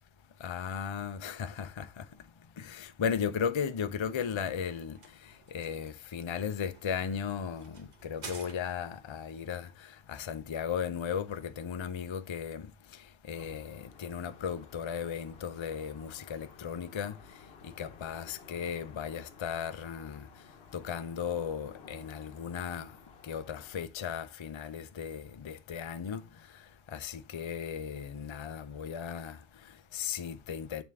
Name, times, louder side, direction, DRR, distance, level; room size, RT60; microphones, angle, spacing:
voice 1, 0.4-2.3 2.6-30.8, left 7 dB, 40° left, 0.4 m, -36 dB
sound 1, 4.0-9.1, right 4 dB, 45° right, 1.0 m, -51 dB
sound 2, 13.3-23.9, left 5 dB, 75° left, 1.1 m, -55 dB
9.0 x 3.7 x 3.4 m
omnidirectional pair, 1.0 m